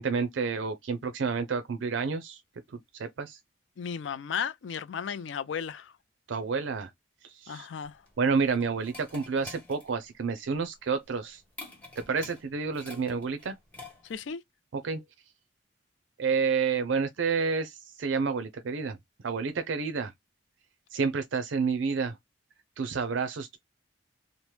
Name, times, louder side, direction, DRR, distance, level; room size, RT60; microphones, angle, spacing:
voice 1, 0.0-2.4 2.7-3.4 6.3-6.9 7.2-7.7 8.2-11.4 12.0-13.6 14.7-15.0 16.2-19.0 19.2-20.1 20.9-22.2 22.8-23.6, right 5 dB, 90° right, 0.5 m, -29 dB
voice 2, 3.8-5.9 7.5-8.0 14.0-14.4, left 7 dB, 75° left, 0.4 m, -35 dB
sound 1, 7.8-14.3, left 2 dB, 10° left, 1.2 m, -48 dB
2.9 x 2.1 x 3.1 m
head